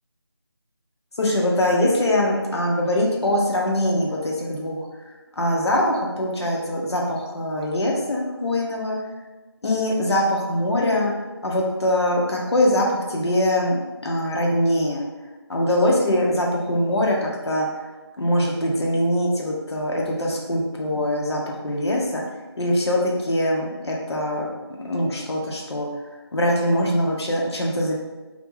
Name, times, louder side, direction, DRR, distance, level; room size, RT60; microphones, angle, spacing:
voice 1, 1.2-4.9 5.3-9.0 9.6-11.1 11.4-15.0 15.5-17.7 18.2-22.2 22.6-24.5 24.8-25.9 26.3-28.0, left 1 dB, 75° left, -2 dB, 0.6 m, -22 dB
2.3 x 2.1 x 3.1 m, 1.2 s
figure-of-eight pair, 170°, 14 cm